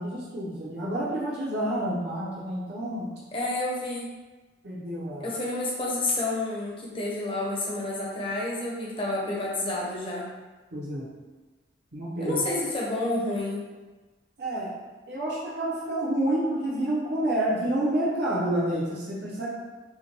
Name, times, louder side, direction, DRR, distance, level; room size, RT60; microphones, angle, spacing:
voice 1, 0.0-3.1 4.6-5.3 10.7-11.1 11.9-12.4 14.4-14.7 15.1-19.5, right 1 dB, 60° right, -6 dB, 0.8 m, -29 dB
voice 2, 3.3-4.1 5.2-10.3 12.2-13.7, left 2 dB, 30° left, -4 dB, 0.8 m, -29 dB
5.6 x 2.2 x 2.9 m, 1.3 s
head